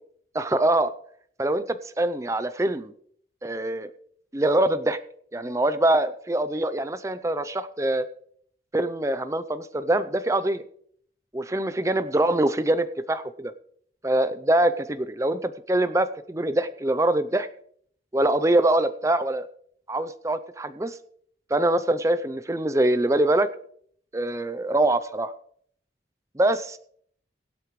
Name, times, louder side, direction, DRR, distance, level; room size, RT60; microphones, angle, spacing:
voice 1, 0.3-0.9 1.4-2.9 3.4-3.9 4.3-5.0 5.3-8.1 8.7-10.6 11.3-13.5 14.0-17.5 18.1-19.5 19.9-21.0 21.5-23.5 24.1-25.3 26.4-26.8, right 1 dB, 15° right, 11 dB, 0.5 m, -24 dB
23.0 x 8.4 x 3.2 m, 0.62 s
head